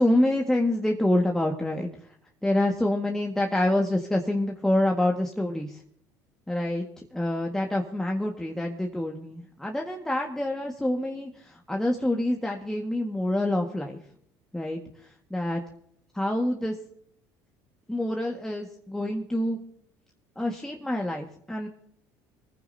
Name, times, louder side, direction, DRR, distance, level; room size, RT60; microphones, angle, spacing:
voice 1, 0.0-2.1 2.4-5.8 6.5-14.0 14.5-15.6 16.1-16.8 17.9-19.6 20.4-21.7, left 1 dB, 5° left, 0 dB, 1.7 m, -27 dB
23.5 x 15.0 x 2.8 m, 0.67 s
supercardioid pair, 85°, 9 cm